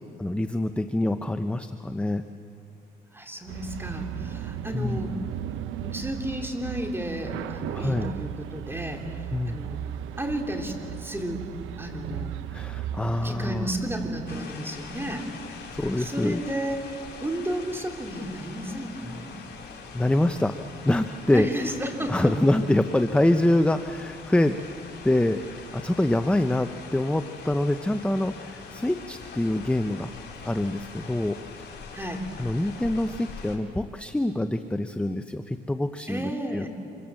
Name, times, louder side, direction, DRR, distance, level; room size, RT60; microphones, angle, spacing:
voice 1, 0.2-2.2 4.7-5.0 7.7-8.1 9.3-9.6 12.5-13.7 15.7-16.4 19.9-21.5 22.1-24.6 25.0-30.1 30.4-31.4 32.4-36.7, left 1 dB, 5° left, 8 dB, 0.8 m, -25 dB
voice 2, 3.1-5.2 5.8-9.8 10.2-11.4 11.8-12.3 13.2-15.3 16.0-16.9 17.2-19.3 21.3-22.3 31.9-32.3 36.1-36.7, equal, 10° right, 3 dB, 3.4 m, -32 dB
sound 1, 3.5-14.4, right 11 dB, 90° right, 0.8 m, -36 dB
sound 2, 14.3-33.6, left 5 dB, 55° left, 4.6 m, -43 dB
26.5 x 24.5 x 7.7 m, 2.5 s
cardioid pair, 90°, 20 cm